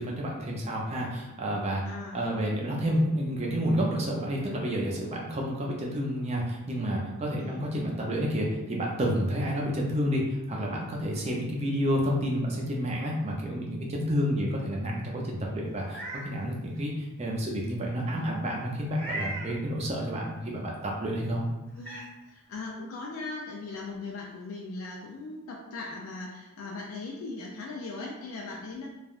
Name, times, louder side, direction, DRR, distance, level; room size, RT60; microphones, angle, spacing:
voice 1, 0.0-21.4, equal, 30° right, -2 dB, 0.5 m, -30 dB
voice 2, 1.9-2.2 7.4-7.7 21.8-22.0 22.3-28.9, left 3 dB, 80° left, -2 dB, 0.4 m, -39 dB
Meow, 15.7-16.3 16.8-16.9 18.9-19.5 21.1-21.2 21.8-22.1, right 2 dB, 5° left, 0.9 m, -37 dB
3.3 x 2.2 x 2.4 m, 0.99 s
head